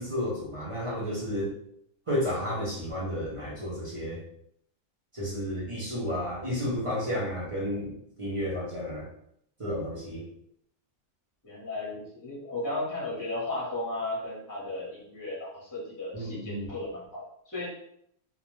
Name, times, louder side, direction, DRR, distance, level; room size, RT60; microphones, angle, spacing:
voice 1, 0.0-1.5 2.1-4.2 5.1-9.0 9.6-10.2 16.1-16.7, equal, 35° right, -5 dB, 0.5 m, -32 dB
voice 2, 11.4-17.7, left 2 dB, 15° left, -6 dB, 0.8 m, -35 dB
2.5 x 2.1 x 3.0 m, 0.72 s
omnidirectional pair, 1.3 m